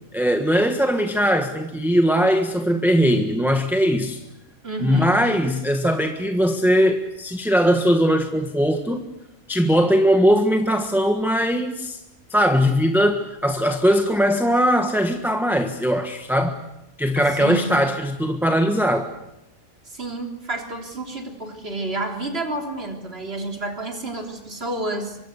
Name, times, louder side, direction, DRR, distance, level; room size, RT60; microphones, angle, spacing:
voice 1, 0.1-4.2 4.8-9.1 9.5-12.0 12.3-16.6 17.0-19.1, equal, ahead, 5 dB, 1.3 m, -20 dB
voice 2, 4.6-5.2 17.3-17.8 19.8-25.2, right 2 dB, 45° right, 3 dB, 3.8 m, -30 dB
Piano, 17.2-18.1, right 1 dB, 25° left, 4.0 m, -38 dB
24.5 x 24.0 x 8.2 m, 0.88 s
omnidirectional pair, 1.5 m